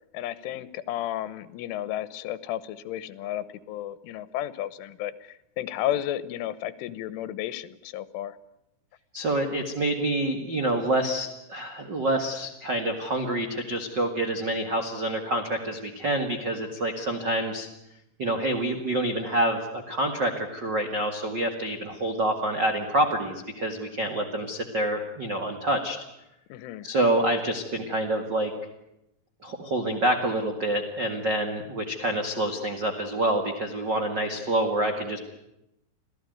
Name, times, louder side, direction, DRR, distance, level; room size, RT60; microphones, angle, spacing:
voice 1, 0.1-8.4 26.5-26.9, left 12 dB, 85° left, 16 dB, 3.5 m, -33 dB
voice 2, 9.1-17.7 18.2-26.0 26.8-28.5 29.4-35.2, right 1 dB, 50° right, 5 dB, 1.3 m, -27 dB
26.5 x 16.5 x 9.3 m, 0.87 s
omnidirectional pair, 5.5 m